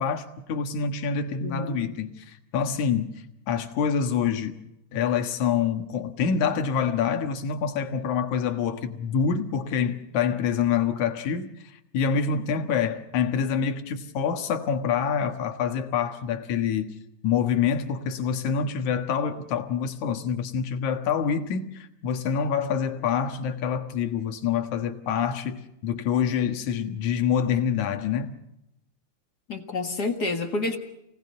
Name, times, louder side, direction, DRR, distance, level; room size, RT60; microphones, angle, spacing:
voice 1, 0.0-4.6 4.9-16.9 17.2-28.4, left 7 dB, 75° left, 2.9 m, -26 dB
voice 2, 1.4-1.9 29.5-30.8, left 3 dB, 40° left, 1.9 m, -29 dB
29.0 x 18.5 x 5.5 m
omnidirectional pair, 3.4 m